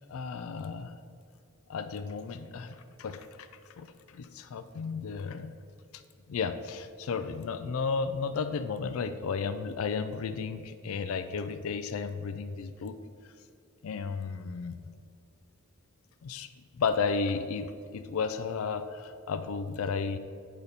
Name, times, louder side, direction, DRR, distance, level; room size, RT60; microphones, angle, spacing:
voice 1, 0.1-0.9 1.7-3.5 3.8-3.9 4.1-5.5 6.3-13.0 13.8-14.8 16.2-16.5 16.7-20.2, left 5 dB, 70° left, 10 dB, 0.4 m, -33 dB
8.2 x 4.2 x 5.2 m, 2.4 s
head